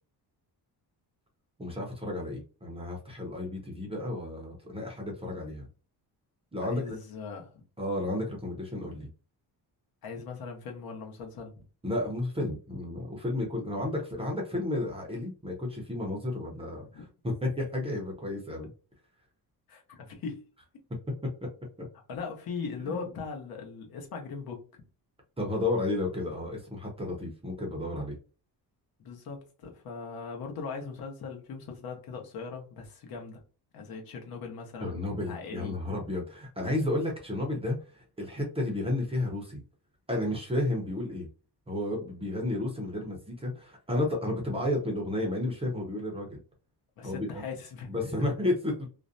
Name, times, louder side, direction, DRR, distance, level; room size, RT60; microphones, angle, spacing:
voice 1, 1.6-5.7 6.5-7.0 7.8-9.1 11.8-18.7 22.8-22.9 25.4-28.1 34.8-39.6 40.1-41.3 41.7-46.4 47.0-47.4 47.9-48.9, left 1 dB, 15° right, 0.6 m, -32 dB
voice 2, 6.6-7.6 10.0-11.6 16.9-17.0 19.7-20.5 22.1-24.8 29.0-33.4 33.7-34.9 35.3-35.7 47.0-47.9, left 5 dB, 60° left, 0.8 m, -39 dB
2.5 x 2.1 x 2.5 m
cardioid pair, 160°, 40 cm